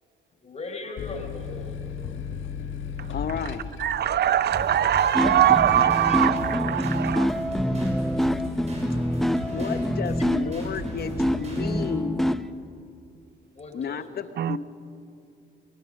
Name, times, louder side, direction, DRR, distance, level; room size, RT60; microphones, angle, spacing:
voice 1, 0.4-1.7 6.1-6.2 13.5-14.2, left 3 dB, 35° left, 3 dB, 4.3 m, -38 dB
Refreg Stop, 1.0-8.2 8.7-9.4, left 6 dB, 75° left, 1.5 m, -37 dB
voice 2, 3.1-3.6 9.4-12.4 13.7-14.6, left 7 dB, 50° left, 11 dB, 1.1 m, -32 dB
voice 3, 3.8-7.4 14.4-14.6, right 10 dB, 55° right, 18 dB, 0.6 m, -22 dB
sound 1, 4.5-11.9, equal, 35° right, 6.0 m, -36 dB
sound 2, 5.1-12.5, equal, ahead, 0.6 m, -26 dB
22.0 x 19.0 x 6.5 m, 2.6 s
cardioid pair, 90°, 20 cm